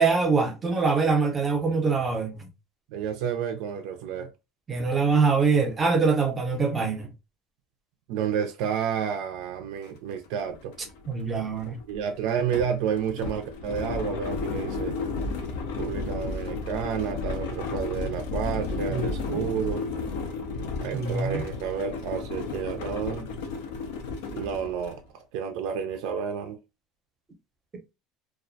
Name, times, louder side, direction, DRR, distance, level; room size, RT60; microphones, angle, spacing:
voice 1, 0.0-2.5 4.7-7.1 11.1-11.8 18.9-19.0 19.3-19.4 20.9-21.4, right 4 dB, 20° right, 0.6 m, -24 dB
voice 2, 2.9-4.3 8.1-10.7 11.9-14.9 15.8-19.8 20.8-23.3 24.3-26.6, right 7 dB, 70° right, 0.3 m, -30 dB
sound 1, 9.8-9.9 10.3-25.0, left 4 dB, 85° left, 0.5 m, -33 dB
2.3 x 2.1 x 2.6 m
cardioid pair, 130°, 0 cm